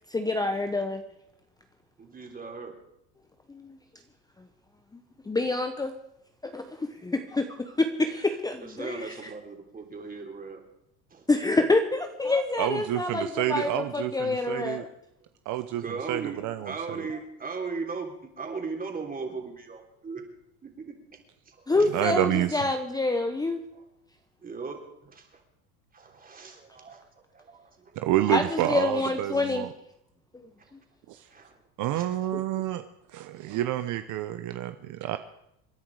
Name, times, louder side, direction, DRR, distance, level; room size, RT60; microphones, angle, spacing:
voice 1, 0.1-1.0 3.5-3.8 5.3-5.9 6.4-9.0 11.3-14.9 21.7-23.6 28.3-29.7 30.3-30.5, left 2 dB, 10° left, 7 dB, 0.9 m, -27 dB
voice 2, 2.0-2.7 8.6-10.6 11.1-11.3 15.8-20.2 20.6-21.2 21.5-21.9 23.7-23.8 24.4-25.4 25.9-28.0 30.6-30.7 31.1-31.6 31.9-32.4 33.5-33.7, right 4 dB, 25° right, 2 dB, 3.5 m, -38 dB
voice 3, 12.6-14.8 15.5-15.8 16.1-16.7 21.9-22.6 28.0-29.7 31.1-31.2 31.8-32.8 33.1-35.2, right 13 dB, 55° right, 10 dB, 0.9 m, -28 dB
27.5 x 10.5 x 4.9 m, 0.78 s
supercardioid pair, 115°, 37 cm